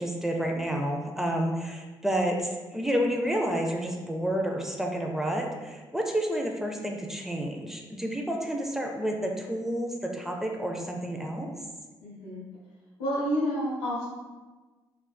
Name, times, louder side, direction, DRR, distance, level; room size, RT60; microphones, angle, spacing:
voice 1, 0.0-11.5, right 1 dB, 5° right, 1 dB, 0.5 m, -30 dB
voice 2, 12.0-12.4 13.0-14.1, equal, 90° left, -6 dB, 0.6 m, -29 dB
3.2 x 2.3 x 2.2 m, 1.3 s
hypercardioid pair, 50°, 12 cm